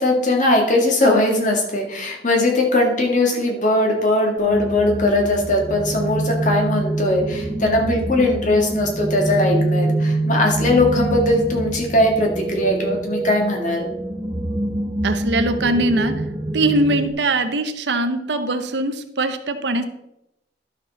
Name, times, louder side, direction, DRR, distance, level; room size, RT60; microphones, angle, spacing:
voice 1, 0.0-13.9, left 1 dB, 45° left, 1 dB, 1.8 m, -19 dB
sound 1, 4.4-17.1, right 2 dB, 15° right, 1.0 m, -25 dB
voice 2, 15.0-16.1 16.5-19.8, right 2 dB, 75° right, 9 dB, 0.8 m, -21 dB
11.5 x 6.0 x 4.1 m, 0.85 s
head